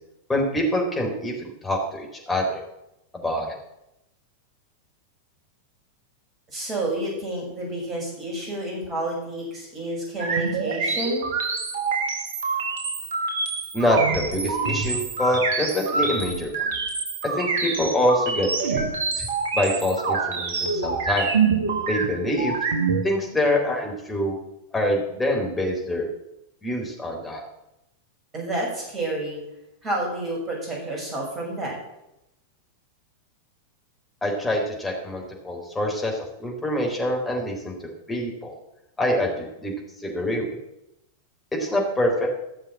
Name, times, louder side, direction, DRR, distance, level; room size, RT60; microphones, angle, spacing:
voice 1, 0.3-2.6 3.1-3.5 13.7-16.5 17.3-18.9 19.2-19.3 19.5-21.3 21.9-22.6 23.0-24.4 24.7-26.1 26.6-27.4 34.2-37.7 38.1-38.3 39.0-39.7 40.0-40.6 41.5-42.3, left 1 dB, 10° left, -1 dB, 3.7 m, -25 dB
voice 2, 6.5-11.3 28.3-29.4 29.8-31.7, right 2 dB, 25° right, -1 dB, 6.1 m, -29 dB
sound 1, 10.2-23.0, right 4 dB, 60° right, 1.4 m, -26 dB
13.5 x 6.9 x 7.4 m, 0.87 s
figure-of-eight pair, 90°, 0 cm